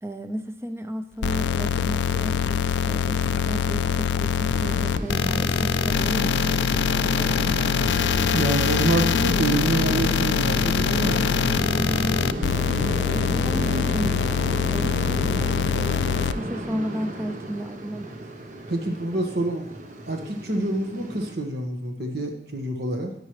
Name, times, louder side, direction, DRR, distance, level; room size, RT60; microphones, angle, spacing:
voice 1, 0.0-6.6 12.8-14.3 14.7-16.0 16.3-18.2, right 1 dB, 15° right, 8 dB, 0.5 m, -34 dB
sound 1, 1.2-16.3, left 7 dB, 85° left, 0.4 m, -23 dB
sound 2, 4.5-21.4, right 1 dB, 45° right, 0.9 m, -32 dB
voice 2, 8.3-11.4 18.7-19.7 20.1-23.1, right 2 dB, 70° right, 3 dB, 1.4 m, -27 dB
10.5 x 8.9 x 3.2 m, 0.77 s
head